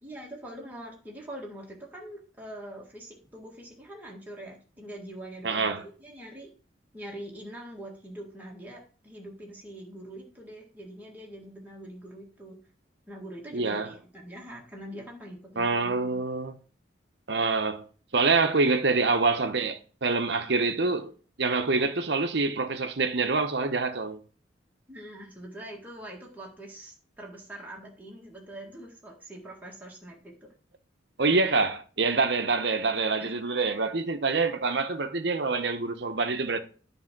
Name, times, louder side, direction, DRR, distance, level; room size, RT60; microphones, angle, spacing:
voice 1, 0.0-6.5 6.9-12.6 13.1-16.2 24.9-30.5 33.2-33.4, right 1 dB, 10° right, 1.7 m, -43 dB
voice 2, 5.4-5.8 13.5-13.9 15.6-16.6 17.3-17.8 18.1-21.1 21.4-24.2 31.2-36.6, right 3 dB, 60° right, 0.9 m, -26 dB
10.0 x 3.5 x 5.9 m
head